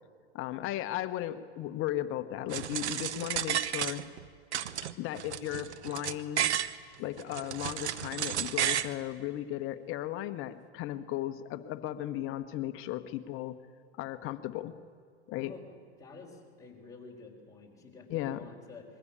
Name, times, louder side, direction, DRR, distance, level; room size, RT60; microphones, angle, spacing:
voice 1, 0.3-4.0 5.0-6.5 7.0-13.6 14.0-14.7 15.3-15.5 18.1-18.5, left 13 dB, 40° left, 11 dB, 1.1 m, -36 dB
sound 1, 2.5-4.2 4.5-6.7 7.2-8.9, right 10 dB, 85° right, 1.0 m, -32 dB
voice 2, 15.4-18.8, left 4 dB, 10° left, -2 dB, 4.6 m, -50 dB
22.0 x 15.0 x 8.7 m, 2.3 s
hypercardioid pair, 115°, 33 cm